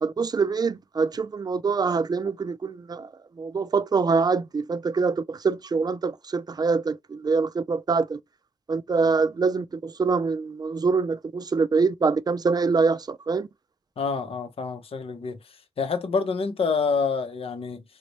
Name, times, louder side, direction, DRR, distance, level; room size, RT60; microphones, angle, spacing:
voice 1, 0.0-3.1 3.4-8.2 8.7-13.5, right 4 dB, 45° right, 0.3 m, -24 dB
voice 2, 14.0-15.4 15.8-17.8, left 5 dB, 80° left, 0.7 m, -27 dB
4.0 x 2.1 x 3.1 m
cardioid pair, 55°, 10 cm